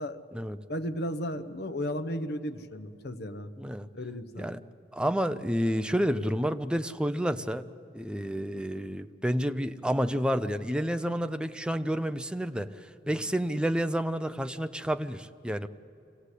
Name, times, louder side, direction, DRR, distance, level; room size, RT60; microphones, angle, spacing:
voice 1, 0.7-3.5 3.9-4.5, equal, 65° left, 10 dB, 1.0 m, -34 dB
voice 2, 3.6-3.9 4.4-4.6 4.9-7.6 7.9-12.7 13.1-15.7, equal, 5° right, 10 dB, 0.5 m, -29 dB
25.5 x 16.5 x 8.3 m, 2.8 s
head